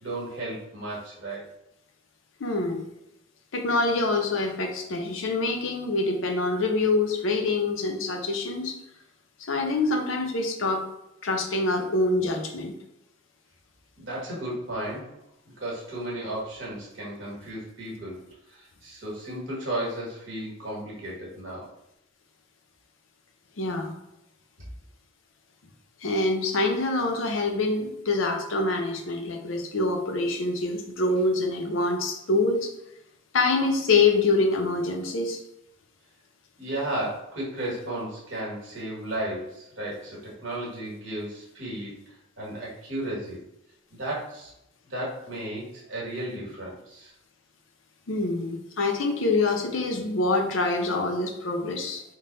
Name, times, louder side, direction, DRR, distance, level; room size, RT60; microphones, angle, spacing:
voice 1, 0.0-1.4 14.0-15.1 15.4-18.2 18.5-21.7 36.6-42.0 42.4-43.4 43.9-44.5 44.9-47.1, right 1 dB, 70° right, -4 dB, 1.5 m, -34 dB
voice 2, 2.4-2.8 3.5-8.8 9.5-10.9 11.2-12.7 23.6-23.9 26.0-32.7 33.3-35.4 48.1-52.0, left 3 dB, 80° left, 3 dB, 0.6 m, -25 dB
3.8 x 2.1 x 3.9 m, 0.84 s
head